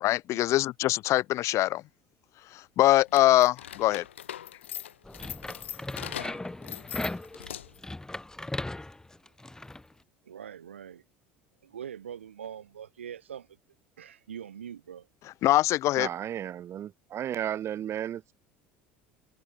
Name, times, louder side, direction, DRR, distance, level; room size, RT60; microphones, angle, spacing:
voice 1, 0.0-1.8 2.5-4.0 15.4-16.1, left 15 dB, 50° left, 0.3 m, -23 dB
sound 1, 3.1-7.9, left 10 dB, 85° left, 1.1 m, -41 dB
sound 2, 5.0-9.8, left 2 dB, 10° left, 2.0 m, -38 dB
voice 2, 10.2-11.0 11.6-13.5 14.0-15.1, right 9 dB, 85° right, 2.4 m, -43 dB
voice 3, 16.0-18.3, right 10 dB, 45° right, 1.3 m, -34 dB
hypercardioid pair, 70°, 6 cm